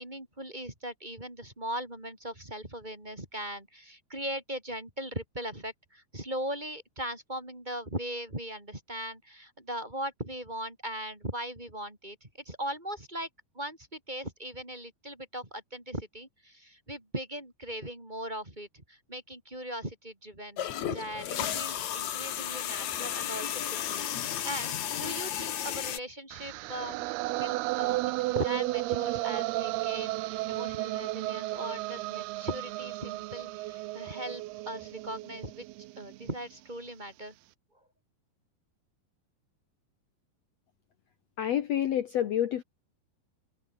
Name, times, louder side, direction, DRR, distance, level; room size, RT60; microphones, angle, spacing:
voice 1, 0.0-13.3 13.5-27.1 27.3-35.6 36.0-37.3, right 1 dB, 10° right, 4.0 m, -39 dB
sound 1, 20.6-26.0, left 10 dB, 55° left, 2.4 m, -33 dB
sound 2, 26.3-36.4, right 19 dB, 80° right, 2.5 m, -33 dB
voice 2, 41.4-42.6, left 10 dB, 75° left, 1.5 m, -28 dB
omnidirectional pair, 4.8 m